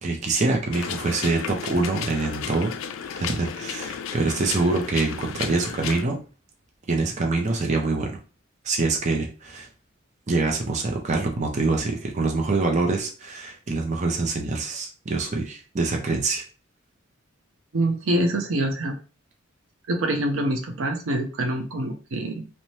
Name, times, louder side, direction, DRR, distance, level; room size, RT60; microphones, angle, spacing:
voice 1, 0.0-2.7 3.1-6.2 6.9-8.2 8.6-9.7 10.3-16.4, right 3 dB, 35° right, 2 dB, 0.5 m, -25 dB
sound 1, 0.7-6.0, left 7 dB, 75° left, 0.3 m, -33 dB
voice 2, 17.7-19.0 19.9-22.5, right 1 dB, 90° right, 5 dB, 0.6 m, -25 dB
2.7 x 2.1 x 3.1 m, 0.35 s
head